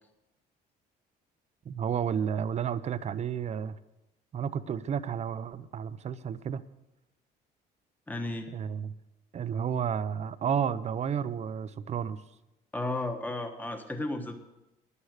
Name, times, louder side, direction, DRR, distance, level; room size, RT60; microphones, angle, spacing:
voice 1, 1.7-3.8 4.3-6.6 8.5-8.9 9.3-12.2, right 8 dB, 40° right, 14 dB, 0.6 m, -31 dB
voice 2, 8.1-8.5 12.7-14.4, left 2 dB, 10° left, 5 dB, 1.2 m, -33 dB
11.0 x 9.8 x 6.5 m, 0.96 s
cardioid pair, 110°, 17 cm